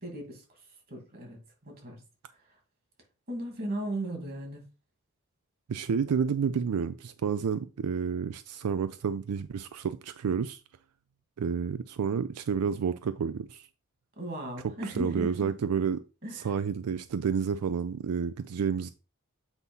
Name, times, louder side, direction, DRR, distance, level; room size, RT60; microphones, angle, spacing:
voice 1, 0.0-2.0 2.3-2.6 3.3-4.6 14.2-15.5 16.2-16.5, right 1 dB, 45° right, 2.4 m, -37 dB
voice 2, 5.7-10.6 11.4-13.7 15.0-16.0 16.3-18.9, right 6 dB, 90° right, 0.4 m, -30 dB
8.1 x 2.7 x 5.4 m
head